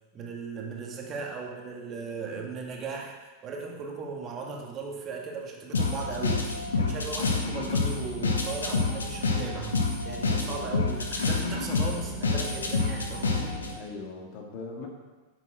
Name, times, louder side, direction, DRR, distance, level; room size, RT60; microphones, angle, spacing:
voice 1, 0.1-3.2 3.4-9.8 10.0-13.6, right 4 dB, 30° right, 0 dB, 2.0 m, -37 dB
sound 1, 5.7-13.7, left 3 dB, 70° left, 1.3 m, -28 dB
voice 2, 10.3-10.7 13.7-14.9, left 3 dB, 45° left, 1 dB, 2.1 m, -40 dB
9.9 x 7.4 x 6.2 m, 1.3 s
figure-of-eight pair, 90°, 0 cm